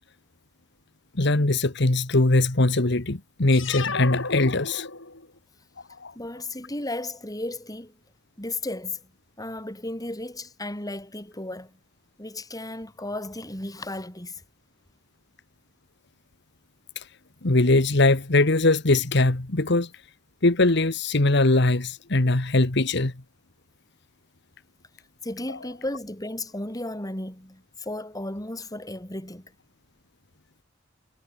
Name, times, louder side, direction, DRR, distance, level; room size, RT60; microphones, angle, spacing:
voice 1, 1.2-4.9 6.0-6.1 16.9-17.1 17.4-19.9 20.4-23.1, left 2 dB, 60° left, 1.6 m, -21 dB
sound 1, 3.5-5.4, left 4 dB, 85° left, 6.5 m, -33 dB
voice 2, 6.1-8.0 8.4-9.1 9.4-11.8 12.2-14.4 25.2-29.5, left 1 dB, 20° left, 6.3 m, -34 dB
head